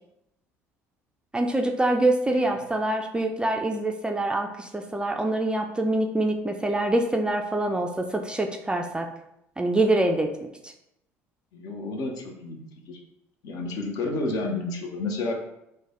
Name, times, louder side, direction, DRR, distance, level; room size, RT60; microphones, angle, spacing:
voice 1, 1.3-9.1 9.6-10.3 10.6-10.7, right 2 dB, 10° right, 4 dB, 0.3 m, -25 dB
voice 2, 11.5-13.0 13.4-15.3, left 2 dB, 55° left, 2 dB, 0.7 m, -31 dB
3.2 x 2.2 x 3.6 m, 0.82 s
figure-of-eight pair, 60°, 8 cm